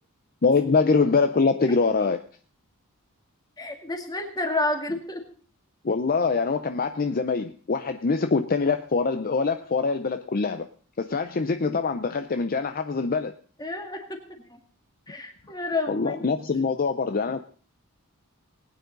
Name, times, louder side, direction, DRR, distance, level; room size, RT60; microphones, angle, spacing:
voice 1, 0.4-2.2 5.8-10.7 11.0-13.3 15.9-17.5, left 4 dB, 40° left, 9 dB, 0.6 m, -24 dB
voice 2, 3.6-5.2 13.6-14.2 14.5-14.6 15.1-16.2, left 2 dB, 20° left, 4 dB, 2.0 m, -30 dB
19.5 x 9.4 x 3.9 m, 0.43 s
head